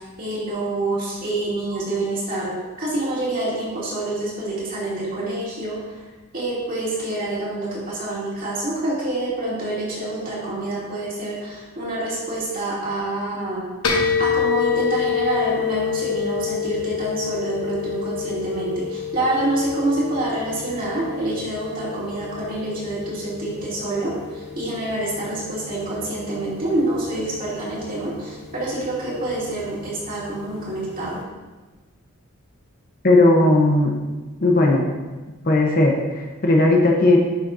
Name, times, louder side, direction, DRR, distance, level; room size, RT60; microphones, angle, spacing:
voice 1, 0.0-5.8 6.3-13.6 14.2-31.2, right 2 dB, 40° right, -7 dB, 2.5 m, -27 dB
sound 1, 13.8-31.2, left 7 dB, 75° left, 1.2 m, -29 dB
voice 2, 33.0-33.9 34.4-34.8 35.5-37.2, left 2 dB, 40° left, 0 dB, 0.8 m, -16 dB
11.0 x 6.4 x 2.6 m, 1.3 s
head